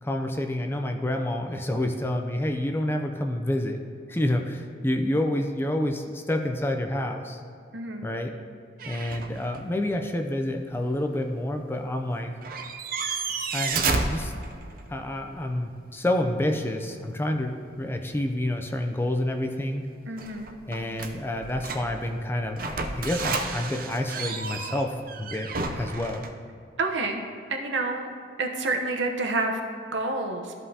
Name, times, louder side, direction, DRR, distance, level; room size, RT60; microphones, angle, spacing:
voice 1, 0.0-3.8 4.1-7.4 8.0-8.4 8.8-12.3 13.5-14.3 14.9-19.9 20.7-25.5 25.8-26.3, left 1 dB, 10° left, 4 dB, 0.4 m, -28 dB
voice 2, 7.7-8.1 20.1-20.5 26.8-27.2 27.5-28.1 28.4-29.6 29.9-30.5, right 2 dB, 75° right, 3 dB, 0.8 m, -28 dB
sound 1, 8.8-9.6 9.9-10.0 12.1-12.2 12.4-15.0 20.2-22.1 22.6-26.3, right 4 dB, 50° right, 0.6 m, -31 dB
13.5 x 5.4 x 2.8 m, 2.4 s
head